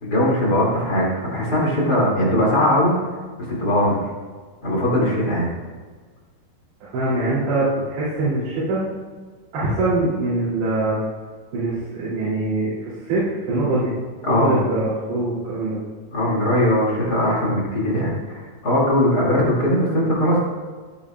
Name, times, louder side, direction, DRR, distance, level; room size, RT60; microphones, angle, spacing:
voice 1, 0.0-3.0 3.5-4.0 4.6-5.5 14.2-14.6 16.1-20.4, left 1 dB, 30° left, -4 dB, 2.3 m, -20 dB
voice 2, 6.8-8.8 9.5-11.0 11.5-13.9 14.3-15.8, right 2 dB, 90° right, -11 dB, 5.2 m, -23 dB
15.5 x 8.9 x 2.4 m, 1.5 s
omnidirectional pair, 4.8 m